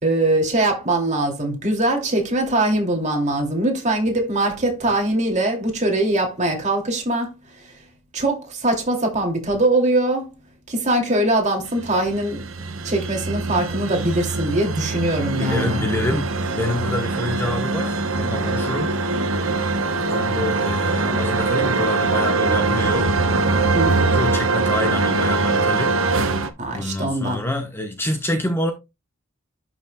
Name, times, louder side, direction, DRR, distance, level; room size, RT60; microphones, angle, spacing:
voice 1, 0.0-7.3 8.1-10.3 10.7-12.5 12.8-15.8 23.7-24.0 26.6-27.4, right 1 dB, 35° right, 2.7 m, -22 dB
sound 1, 11.8-26.5, right 3 dB, 75° right, 1.0 m, -22 dB
voice 2, 15.4-18.9 20.1-23.1 24.0-25.9 26.7-28.7, left 1 dB, 10° left, 1.0 m, -27 dB
11.5 x 6.0 x 2.3 m
head